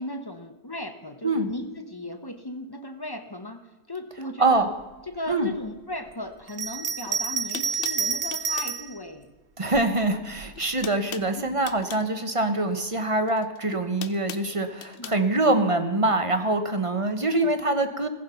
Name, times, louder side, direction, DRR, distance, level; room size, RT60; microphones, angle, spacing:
voice 1, 0.0-3.6 3.9-4.7 5.1-9.3 11.1-11.5 14.8-15.2 17.4-17.6, left 1 dB, 20° left, 8 dB, 0.6 m, -37 dB
Bell, 6.5-8.9 9.7-10.6, right 5 dB, 65° right, 0.4 m, -29 dB
sound 1, 7.0-7.1 7.5-8.8 10.0-10.3 10.5-12.1 13.3-15.2, left 9 dB, 85° left, 0.5 m, -40 dB
voice 2, 9.6-18.1, right 2 dB, 25° right, 8 dB, 0.8 m, -24 dB
15.5 x 14.5 x 5.7 m, 1.1 s
omnidirectional pair, 1.8 m